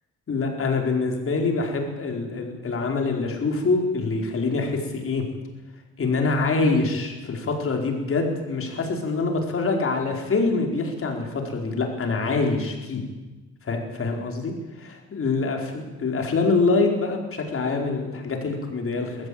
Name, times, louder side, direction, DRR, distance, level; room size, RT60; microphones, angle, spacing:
voice 1, 0.3-5.2 6.0-13.0 13.6-19.3, left 3 dB, 45° left, 3 dB, 4.8 m, -25 dB
20.0 x 15.0 x 8.8 m, 1.2 s
cardioid pair, 90°, 30 cm